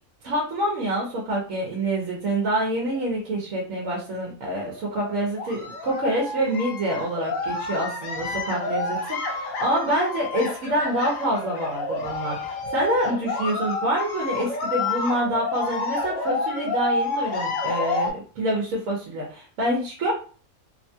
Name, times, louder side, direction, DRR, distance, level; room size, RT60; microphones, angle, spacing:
voice 1, 0.2-20.1, right 1 dB, 80° right, -2 dB, 1.1 m, -26 dB
sound 1, 2.9-3.0 3.8-3.9 4.4-18.1, left 3 dB, 80° left, 1.0 m, -29 dB
3.0 x 2.2 x 2.7 m, 0.40 s
omnidirectional pair, 1.4 m